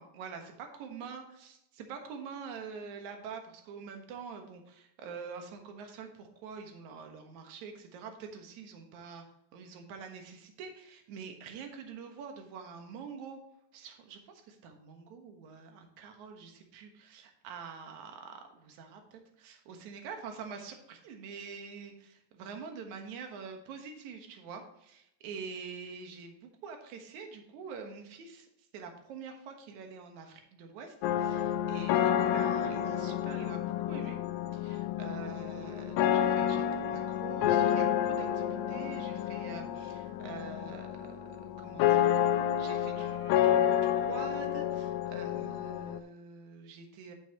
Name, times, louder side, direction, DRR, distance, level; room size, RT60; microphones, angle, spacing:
voice 1, 0.0-0.4 0.8-9.2 9.5-13.4 13.7-28.5 28.7-34.2 34.5-42.1 42.6-47.1, right 5 dB, 65° right, 4 dB, 2.5 m, -46 dB
sound 1, 31.0-46.0, left 10 dB, 90° left, 2.4 m, -30 dB
11.0 x 7.1 x 3.0 m, 0.76 s
omnidirectional pair, 4.1 m